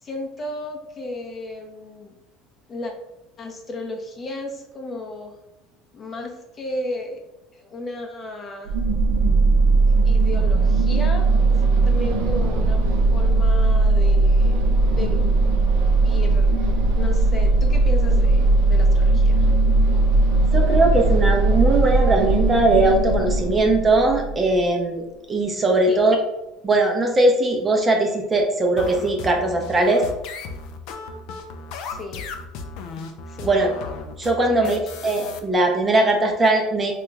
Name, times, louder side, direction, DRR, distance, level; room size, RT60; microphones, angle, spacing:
voice 1, 0.0-2.2 2.7-2.9 3.4-5.4 5.9-7.2 7.5-8.7 10.0-11.6 11.8-12.8 13.1-15.3 16.0-19.4 25.9-26.0 31.9-32.3 33.3-33.6 34.5-34.8, left 2 dB, 30° left, 2 dB, 0.6 m, -34 dB
sound 1, 8.7-24.6, right 2 dB, 85° right, 0.5 m, -18 dB
voice 2, 20.5-25.0 25.3-26.2 26.6-30.0 33.4-33.7 34.2-36.9, right 2 dB, 25° right, 2 dB, 0.5 m, -20 dB
sound 2, 28.8-35.4, left 4 dB, 65° left, 0.4 m, -35 dB
2.9 x 2.3 x 3.2 m, 0.94 s
supercardioid pair, 105°, 0 cm